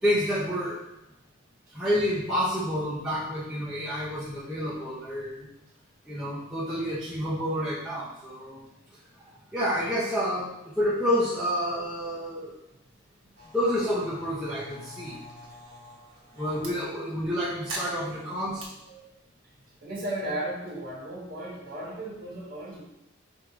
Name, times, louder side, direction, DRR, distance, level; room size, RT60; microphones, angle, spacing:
voice 1, 0.0-0.8 1.7-5.5 6.1-8.7 9.5-12.6 13.4-15.2 16.3-18.7, equal, ahead, -11 dB, 0.6 m, -29 dB
sound 1, 13.4-16.7 17.7-18.7, right 1 dB, 70° right, 1.0 m, -43 dB
voice 2, 19.8-22.9, right 1 dB, 55° right, -7 dB, 1.2 m, -36 dB
4.6 x 2.6 x 3.5 m, 0.87 s
head